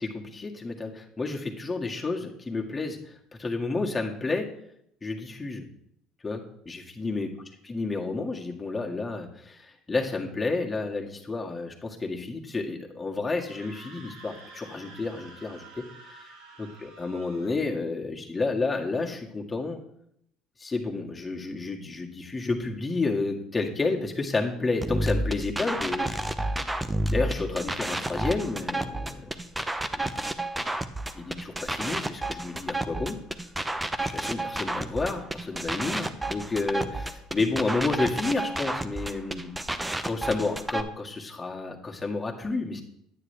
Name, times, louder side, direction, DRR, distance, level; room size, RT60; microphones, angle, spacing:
voice 1, 0.0-4.5 5.0-5.7 6.2-7.3 7.6-16.2 16.6-19.8 20.6-26.1 27.1-29.3 29.9-30.1 31.1-33.2 34.0-39.5 40.0-42.8, left 3 dB, 20° left, 0 dB, 1.8 m, -31 dB
Screaming, 13.3-17.7, right 3 dB, 90° right, 4.0 m, -49 dB
sound 1, 24.8-40.8, right 1 dB, 10° right, 0.8 m, -30 dB
9.6 x 9.2 x 3.3 m, 0.73 s
hypercardioid pair, 75°, 0 cm